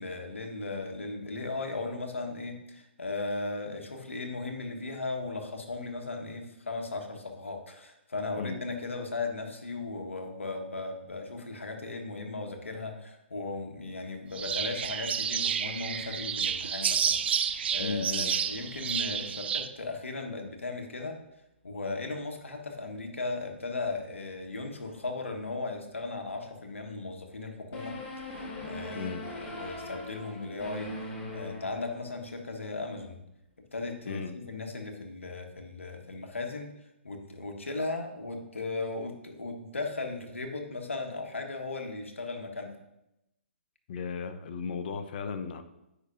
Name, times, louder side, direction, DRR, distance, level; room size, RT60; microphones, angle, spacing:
voice 1, 0.0-21.2 21.6-28.0 28.3-30.9 31.3-33.2 33.7-36.7 37.0-42.8, left 3 dB, 90° left, 4 dB, 1.1 m, -37 dB
sound 1, 14.3-19.7, right 8 dB, 60° right, 0.4 m, -30 dB
voice 2, 17.8-18.3 28.9-29.3 34.1-34.4 43.9-45.6, left 5 dB, 50° left, 8 dB, 0.7 m, -35 dB
sound 2, 27.7-32.4, left 1 dB, 25° left, 1.5 m, -41 dB
8.2 x 5.6 x 2.5 m, 0.87 s
hypercardioid pair, 135°, 7 cm